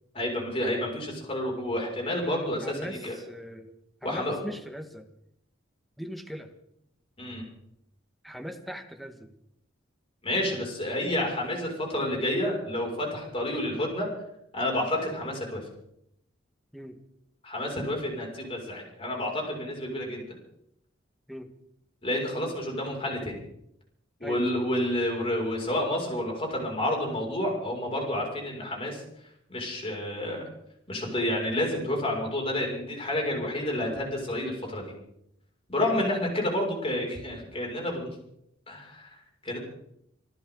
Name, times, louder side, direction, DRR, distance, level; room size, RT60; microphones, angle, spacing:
voice 1, 0.1-3.2 4.0-4.4 7.2-7.4 10.2-14.1 14.5-15.7 17.4-20.2 22.0-23.4 24.2-29.0 29.5-30.4 30.9-34.9 35.7-38.1 38.7-39.1 39.4-39.6, left 1 dB, 30° left, -1 dB, 6.2 m, -29 dB
voice 2, 2.6-3.7 4.0-5.1 6.0-6.5 8.2-9.3 16.7-16.9 21.3-21.5 24.2-24.5 35.9-36.1, equal, ahead, 6 dB, 1.5 m, -40 dB
27.0 x 13.5 x 3.9 m, 0.76 s
head